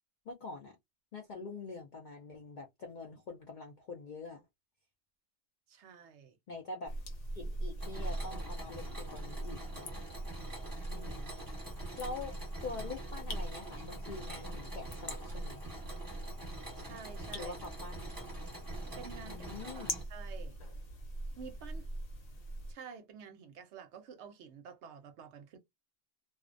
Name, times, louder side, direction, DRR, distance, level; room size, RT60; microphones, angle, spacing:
voice 1, 0.3-0.8 1.1-4.4 6.5-6.9 7.4-9.9 10.9-11.3 12.0-12.3 12.6-15.6 17.3-18.1 19.2-20.0, left 3 dB, 65° left, 0.4 m, -45 dB
voice 2, 5.7-6.4 10.9-11.1 16.4-17.6 19.0-20.6 21.4-21.9 22.7-25.6, right 6 dB, 65° right, 0.8 m, -50 dB
sound 1, 6.9-22.7, right 1 dB, 85° left, 1.2 m, -42 dB
Mechanisms, 7.8-20.0, right 1 dB, 15° right, 0.9 m, -47 dB
2.4 x 2.1 x 2.4 m
omnidirectional pair, 1.4 m